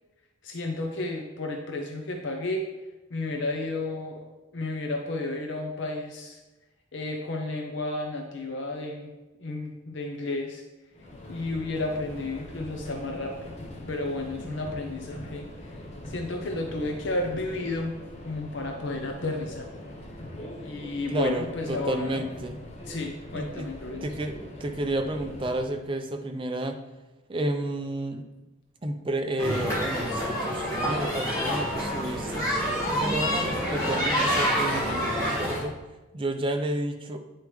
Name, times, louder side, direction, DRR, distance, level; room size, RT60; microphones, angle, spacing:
voice 1, 0.4-2.6 3.1-6.4 6.9-9.1 9.4-10.6 11.3-13.5 13.9-15.8 16.1-17.9 18.2-19.7 20.6-22.2 22.9-24.1, left 2 dB, 60° left, 2 dB, 0.6 m, -32 dB
Subway metro underground, 10.9-25.8, left 1 dB, 30° left, 0.9 m, -42 dB
voice 2, 14.4-14.7 21.1-22.6 23.3-23.7 24.0-26.8 27.3-28.2 28.8-32.5 32.9-35.8 36.1-37.2, right 1 dB, 25° right, 5 dB, 0.5 m, -31 dB
sound 1, 29.4-35.6, equal, 15° left, 1.7 m, -27 dB
8.9 x 4.6 x 3.1 m, 1.1 s
head